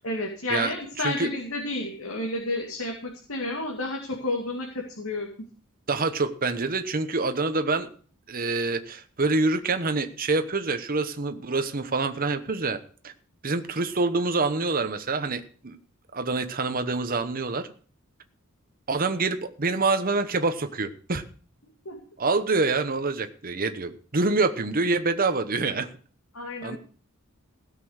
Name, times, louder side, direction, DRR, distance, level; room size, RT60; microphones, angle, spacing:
voice 1, 0.0-5.3 21.8-22.0 26.3-26.8, left 2 dB, 75° left, -1 dB, 2.5 m, -31 dB
voice 2, 5.9-7.9 8.3-12.8 13.0-13.1 13.4-15.8 16.1-17.7 18.9-21.2 22.2-25.9 26.6-26.8, right 3 dB, 40° right, 8 dB, 1.0 m, -26 dB
16.5 x 6.9 x 6.5 m, 0.44 s
head